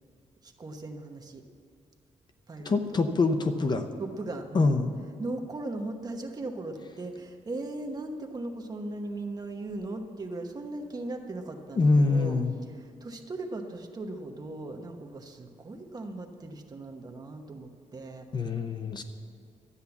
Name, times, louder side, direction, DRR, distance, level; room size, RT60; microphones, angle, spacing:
voice 1, 0.4-1.4 2.5-3.1 4.0-4.7 5.2-12.4 12.7-18.3, right 2 dB, 30° right, 4 dB, 1.1 m, -38 dB
voice 2, 2.6-3.9 4.5-4.9 11.8-12.5 18.3-19.0, left 3 dB, 35° left, 7 dB, 0.7 m, -24 dB
12.5 x 9.4 x 7.1 m, 2.3 s
wide cardioid pair, 160°, 13 cm